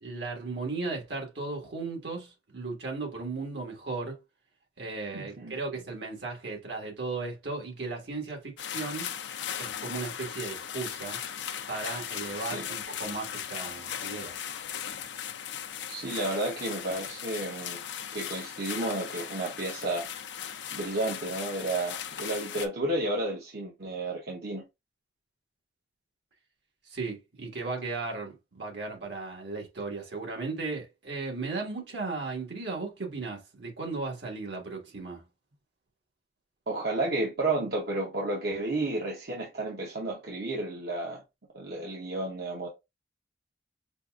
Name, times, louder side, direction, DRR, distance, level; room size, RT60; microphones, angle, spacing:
voice 1, 0.0-4.2 4.8-9.1 9.6-11.2 11.7-14.4 26.8-35.2, right 3 dB, 75° right, 1.6 m, -36 dB
voice 2, 5.1-5.6 12.4-12.6 15.9-17.8 18.1-20.1 20.7-24.6 36.7-41.2 41.5-42.7, right 2 dB, 60° right, 0.8 m, -32 dB
sound 1, 8.6-22.7, left 9 dB, 85° left, 0.5 m, -38 dB
5.3 x 2.4 x 2.3 m
head